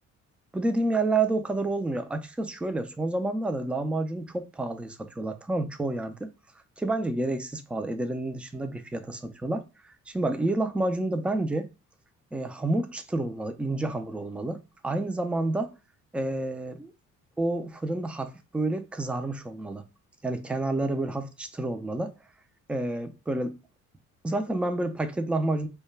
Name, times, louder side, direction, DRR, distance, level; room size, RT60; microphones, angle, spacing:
voice 1, 0.5-6.3 6.8-11.7 12.3-15.7 16.1-16.9 17.4-19.8 20.2-22.1 22.7-23.6 24.2-25.7, right 2 dB, 5° right, 0.3 m, -29 dB
2.2 x 2.2 x 3.1 m
cardioid pair, 90°, 30 cm